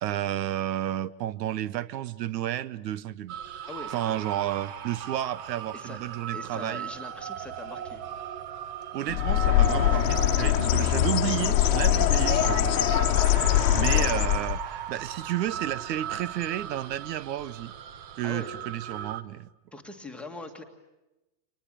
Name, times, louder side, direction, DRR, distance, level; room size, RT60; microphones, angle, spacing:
voice 1, 0.0-3.4 3.9-6.9 8.9-12.7 13.7-17.7 18.1-19.5, right 12 dB, 75° right, 1.0 m, -31 dB
sound 1, 3.3-19.2, right 10 dB, 30° right, 0.9 m, -36 dB
voice 2, 3.7-4.2 5.7-6.0 6.3-8.0 9.9-10.0 10.4-10.5 18.2-18.5 19.7-20.6, left 2 dB, ahead, 1.7 m, -41 dB
Bird, 9.1-14.7, left 13 dB, 50° left, 1.2 m, -23 dB
25.0 x 19.5 x 10.0 m
supercardioid pair, 165°, 50 cm